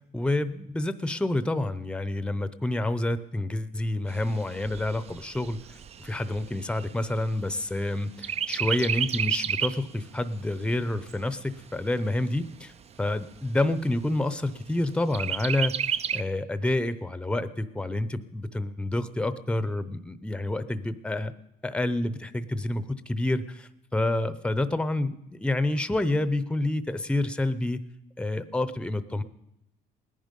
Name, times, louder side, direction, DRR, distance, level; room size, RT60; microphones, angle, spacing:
voice 1, 0.1-5.6 6.0-12.7 13.0-15.7 16.1-21.3 21.6-27.8 28.2-29.2, left 1 dB, 5° left, 13 dB, 0.7 m, -28 dB
Chirp tweet, 4.1-7.8 8.2-9.9 10.3-10.4 10.8-11.8 12.4-12.5 12.8-12.9 13.4-13.9 15.1-16.2, right 8 dB, 40° right, 0.5 m, -31 dB
19.0 x 10.5 x 5.3 m, 0.84 s
cardioid pair, 110°, 17 cm